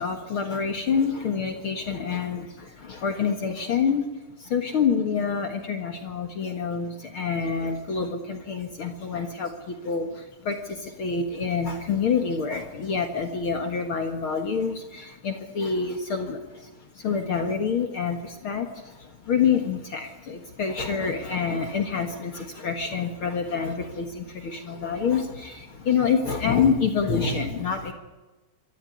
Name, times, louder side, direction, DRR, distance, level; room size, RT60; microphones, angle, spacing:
voice 1, 0.0-4.1 4.4-27.9, left 6 dB, 55° left, 5 dB, 1.5 m, -27 dB
25.0 x 13.5 x 9.3 m, 1.2 s
omnidirectional pair, 4.6 m